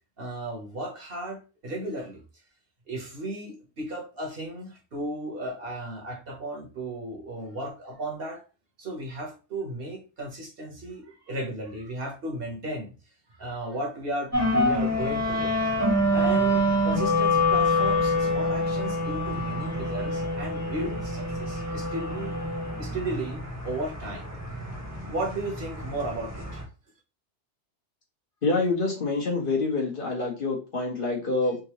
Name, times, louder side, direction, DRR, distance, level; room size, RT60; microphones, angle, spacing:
voice 1, 0.2-2.2 2.9-8.4 8.8-12.9 13.3-15.5 16.1-22.4 22.8-24.3 25.0-26.7, right 1 dB, 55° right, 0 dB, 1.2 m, -35 dB
sound 1, 14.3-26.6, left 1 dB, 15° right, 0.9 m, -26 dB
voice 2, 28.4-31.6, left 3 dB, 50° left, -1 dB, 1.1 m, -26 dB
3.6 x 2.6 x 2.9 m, 0.32 s
omnidirectional pair, 1.2 m